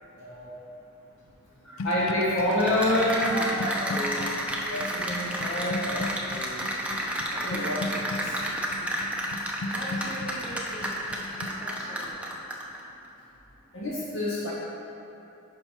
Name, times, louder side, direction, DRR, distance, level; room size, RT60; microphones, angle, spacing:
voice 1, 0.2-0.5 1.6-4.4 4.7-6.6 7.3-8.3 8.8-8.9 11.4-11.9 13.7-14.5, left 1 dB, 65° left, -6 dB, 0.8 m, -29 dB
sound 1, 1.8-11.5, left 2 dB, 90° left, 0.4 m, -38 dB
Cheering / Applause, 2.4-12.8, right 1 dB, 5° right, 0.6 m, -31 dB
voice 2, 9.7-12.2, equal, 40° left, -7 dB, 1.6 m, -42 dB
10.0 x 5.5 x 3.0 m, 2.9 s
head